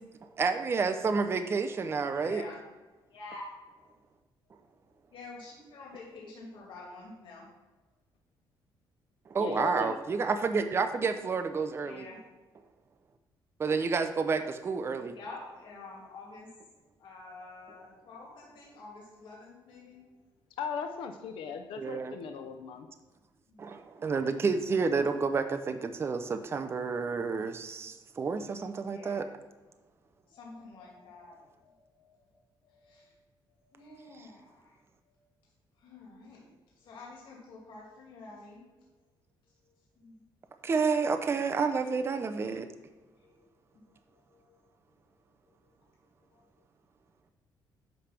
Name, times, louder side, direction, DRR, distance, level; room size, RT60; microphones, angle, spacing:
voice 1, 0.4-2.4 9.3-12.1 13.6-15.2 21.8-22.2 23.6-29.3 40.6-42.7, right 4 dB, 30° right, 8 dB, 0.5 m, -30 dB
voice 2, 2.2-2.6 3.1-3.5 3.8-3.9 5.1-7.5 11.8-12.2 15.1-16.5 17.0-20.0 23.5-23.6 28.9-29.2 30.3-32.3 32.6-33.1 33.5-34.8 35.1-35.2 35.8-36.5 36.8-38.9 39.6-40.2 43.1-43.4 43.7-43.8 44.1-44.6 45.5-45.6 46.3-46.5, left 3 dB, 75° left, -3 dB, 2.5 m, -49 dB
voice 3, 9.4-10.0 20.6-22.9, left 6 dB, 90° left, 6 dB, 0.7 m, -38 dB
10.0 x 3.4 x 5.9 m, 1.2 s
cardioid pair, 125°, 9 cm